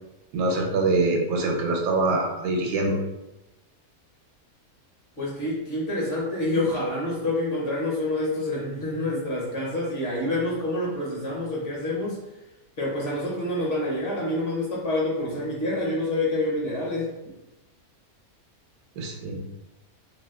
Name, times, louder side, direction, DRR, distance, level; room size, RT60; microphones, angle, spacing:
voice 1, 0.3-3.0 19.0-19.4, right 2 dB, 80° right, 1 dB, 1.1 m, -24 dB
voice 2, 5.2-12.2 12.8-17.1, left 1 dB, 45° left, -4 dB, 0.9 m, -27 dB
2.7 x 2.2 x 3.4 m, 0.99 s
omnidirectional pair, 1.6 m